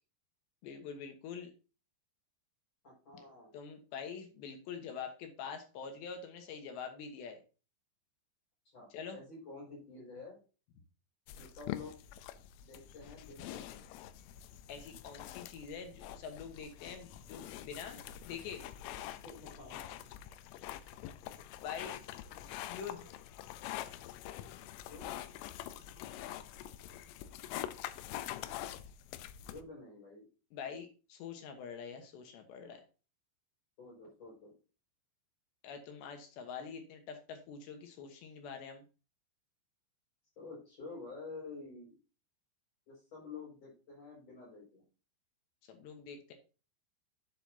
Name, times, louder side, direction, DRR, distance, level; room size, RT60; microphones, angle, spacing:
voice 1, 0.6-1.5 3.5-7.4 8.9-9.2 14.7-18.0 18.3-18.6 21.6-22.0 22.7-23.0 30.5-32.8 35.6-38.8 45.7-46.3, left 6 dB, 70° left, 6 dB, 3.1 m, -45 dB
voice 2, 2.8-3.5 8.7-10.4 11.3-11.9 12.6-13.8 19.2-20.0 24.9-25.2 29.4-30.3 33.8-34.5 40.4-41.9 42.9-44.8, left 4 dB, 35° left, -3 dB, 6.3 m, -49 dB
sound 1, 11.3-29.6, left 12 dB, 90° left, 3.3 m, -45 dB
11.0 x 8.1 x 2.8 m, 0.34 s
omnidirectional pair, 5.6 m